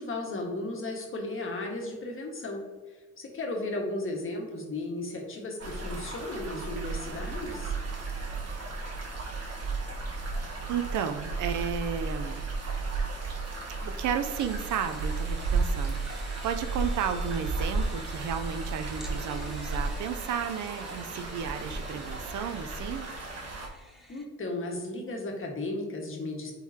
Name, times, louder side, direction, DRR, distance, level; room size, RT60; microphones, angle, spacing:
voice 1, 0.0-7.7 24.1-26.5, left 2 dB, 45° left, 0 dB, 1.6 m, -35 dB
sound 1, 5.6-23.7, right 3 dB, 55° right, 1.4 m, -34 dB
voice 2, 10.7-12.4 13.8-23.1, right 8 dB, 75° right, 8 dB, 0.6 m, -33 dB
sound 2, 14.2-24.3, equal, ahead, 1.2 m, -50 dB
9.1 x 4.0 x 2.8 m, 1.4 s
cardioid pair, 90°, 30 cm